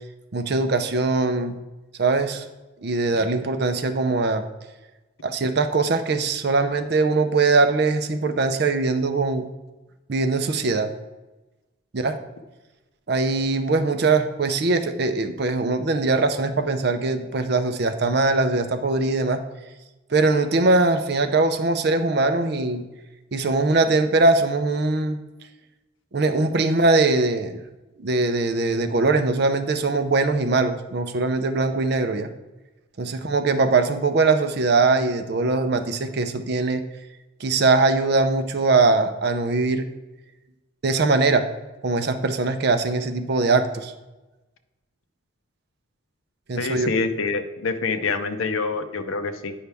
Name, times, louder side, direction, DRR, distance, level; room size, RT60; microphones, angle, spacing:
voice 1, 0.3-1.6 2.0-2.4 2.8-4.4 5.2-9.5 10.1-10.9 11.9-12.2 13.1-19.4 20.1-22.8 23.3-25.2 26.1-27.5 28.0-32.3 33.0-36.8 37.4-39.9 40.8-41.5 41.8-43.9 46.5-46.9, right 3 dB, 50° right, 8 dB, 0.5 m, -21 dB
voice 2, 46.6-49.5, left 4 dB, 75° left, 9 dB, 0.7 m, -26 dB
9.2 x 5.5 x 3.4 m, 1.1 s
head